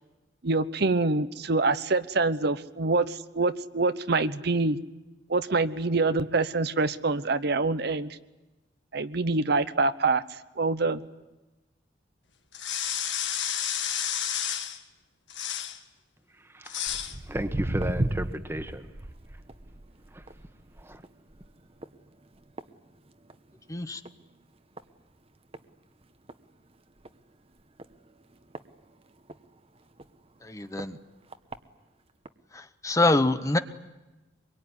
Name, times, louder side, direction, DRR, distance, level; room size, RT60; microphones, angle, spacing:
voice 1, 0.4-4.8 5.3-8.2 8.9-10.2 10.6-11.1, right 3 dB, 60° right, 12 dB, 0.9 m, -25 dB
sound 1, 12.5-14.8 15.3-15.8 16.7-17.2, left 9 dB, 75° left, 1.9 m, -31 dB
voice 2, 16.3-18.9 20.1-20.2 20.8-21.0, right 1 dB, 15° right, 8 dB, 1.5 m, -35 dB
Walk footsteps, 16.9-23.5 23.8-24.2 24.8-24.9 25.5-25.6 26.0-26.1 26.3-26.4 27.0-27.1 27.8-29.4 30.0-30.1 30.8-30.9 31.3-31.6 32.3-32.4, right 1 dB, 30° right, 1.1 m, -35 dB
voice 3, 23.7-24.0 30.4-31.0 32.5-33.6, left 2 dB, 15° left, 10 dB, 0.9 m, -25 dB
24.5 x 22.5 x 9.8 m, 1.1 s
head